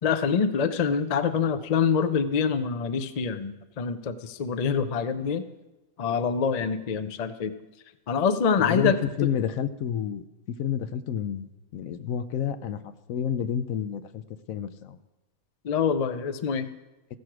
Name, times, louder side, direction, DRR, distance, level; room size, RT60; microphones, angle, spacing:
voice 1, 0.0-5.5 6.0-7.5 8.1-9.3 15.6-16.7, left 6 dB, 55° left, 11 dB, 0.4 m, -25 dB
voice 2, 8.6-14.2 14.5-15.0, left 9 dB, 75° left, 12 dB, 1.0 m, -30 dB
15.0 x 6.4 x 6.0 m, 1.1 s
omnidirectional pair, 1.5 m